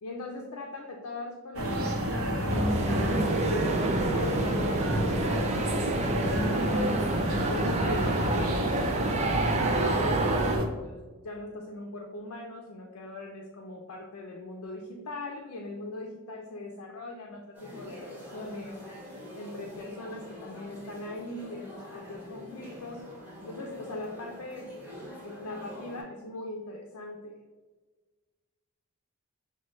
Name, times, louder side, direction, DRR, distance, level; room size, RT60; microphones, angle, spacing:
voice 1, 0.0-2.7 3.3-6.9 7.5-18.8 19.3-23.1 23.5-24.7 25.2-27.4, left 2 dB, 75° left, 1 dB, 0.5 m, -40 dB
sound 1, 1.5-10.6, equal, 65° right, 0.8 m, -29 dB
sound 2, 2.5-10.6, right 3 dB, 30° right, 0.4 m, -29 dB
sound 3, 17.5-26.0, left 1 dB, 10° right, 1.5 m, -45 dB
6.0 x 2.2 x 3.1 m, 1.3 s
head